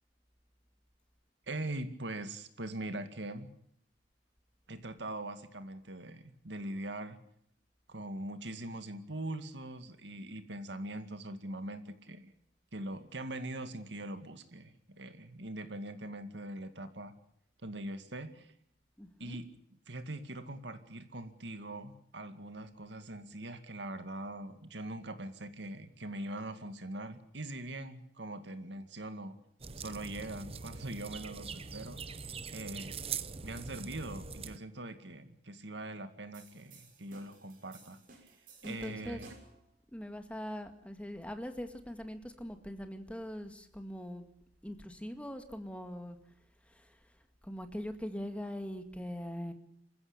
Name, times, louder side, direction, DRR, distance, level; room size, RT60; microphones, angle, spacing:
voice 1, 1.5-3.5 4.7-7.2 7.9-12.3 12.7-17.1 17.6-18.5 19.2-19.5 19.9-29.4 29.7-32.0 32.5-33.0 33.4-38.4 38.6-39.3, right 1 dB, 70° right, 9 dB, 2.2 m, -42 dB
voice 2, 19.0-19.4 38.6-39.2 39.9-44.2 44.6-46.2 46.7-47.1 47.4-49.5, equal, 5° left, 7 dB, 2.0 m, -42 dB
sound 1, 29.6-34.6, right 5 dB, 35° right, 0.9 m, -42 dB
sound 2, 36.3-39.6, right 2 dB, 50° right, 6.2 m, -54 dB
27.0 x 15.5 x 8.9 m, 0.68 s
head